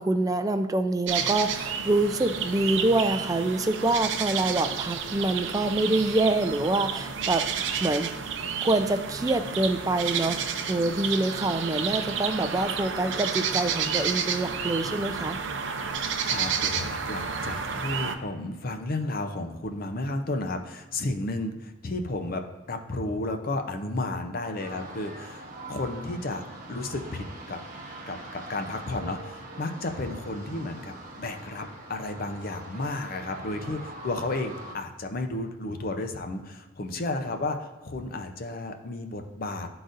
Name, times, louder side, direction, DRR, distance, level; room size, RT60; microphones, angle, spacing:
voice 1, 0.0-7.4 7.8-8.1 8.6-15.4, right 2 dB, 20° right, 8 dB, 0.4 m, -26 dB
sound 1, 1.1-18.2, right 6 dB, 70° right, 0.5 m, -31 dB
voice 2, 16.2-26.4 26.7-27.6 28.1-39.7, left 2 dB, 50° left, 5 dB, 0.6 m, -33 dB
sound 2, 24.6-34.7, right 2 dB, 45° right, 0.9 m, -43 dB
11.5 x 3.9 x 2.5 m, 1.2 s
head